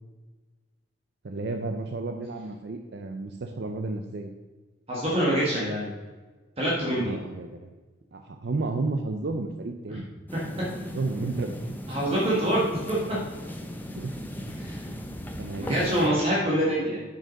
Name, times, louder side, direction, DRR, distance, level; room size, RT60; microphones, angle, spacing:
voice 1, 1.2-4.3 6.9-7.7 8.1-10.1 10.6-11.8 14.0-14.2 15.4-16.2 16.5-17.0, right 3 dB, 55° right, 5 dB, 0.5 m, -32 dB
voice 2, 4.9-5.9 6.6-7.2 9.9-10.0 11.9-13.0 14.6-14.8 15.7-17.0, right 1 dB, 30° right, -6 dB, 1.5 m, -25 dB
sound 1, 10.3-16.1, equal, 10° left, 0.7 m, -38 dB
6.7 x 6.4 x 5.1 m, 1.3 s
head